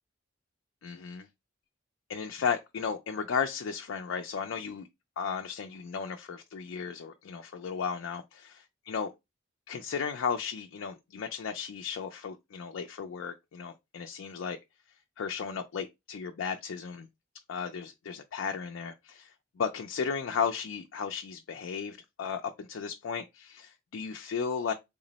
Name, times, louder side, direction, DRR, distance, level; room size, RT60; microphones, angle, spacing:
voice 1, 0.8-1.3 2.1-4.9 5.2-8.2 8.9-9.1 9.7-14.6 15.2-17.1 17.5-24.7, left 6 dB, 85° left, 0.4 m, -34 dB
3.6 x 2.0 x 3.9 m
head